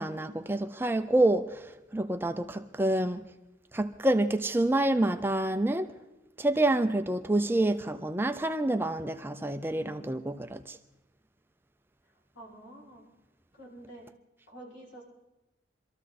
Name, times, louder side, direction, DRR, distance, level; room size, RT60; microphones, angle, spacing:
voice 1, 0.0-1.7 1.9-3.2 3.7-5.9 6.4-10.8, right 1 dB, 10° right, 0.5 m, -27 dB
voice 2, 12.3-13.0 13.6-14.1 14.5-15.0, right 1 dB, 80° left, 6.1 m, -48 dB
25.0 x 13.5 x 4.2 m
head